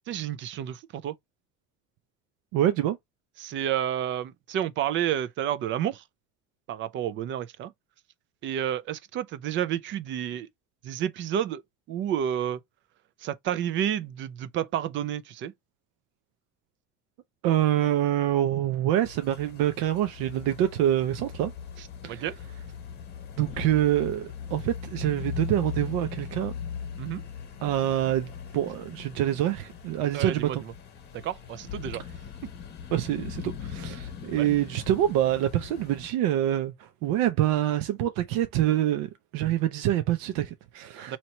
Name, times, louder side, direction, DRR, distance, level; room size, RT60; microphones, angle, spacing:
voice 1, 0.1-1.1 3.4-6.0 6.7-7.7 8.4-10.5 10.8-11.6 11.9-12.6 13.2-15.5 21.8-22.4 27.0-27.2 30.1-30.6 31.1-32.0 32.4-32.5 34.4-34.5 41.1-41.2, right 10 dB, 40° right, 0.4 m, -30 dB
voice 2, 2.5-3.0 17.4-21.5 22.0-22.2 23.4-26.5 27.6-30.6 32.9-41.2, right 12 dB, 90° right, 0.6 m, -26 dB
sound 1, 19.0-36.1, left 7 dB, 30° left, 1.1 m, -40 dB
2.9 x 2.9 x 4.3 m
cardioid pair, 165°, 32 cm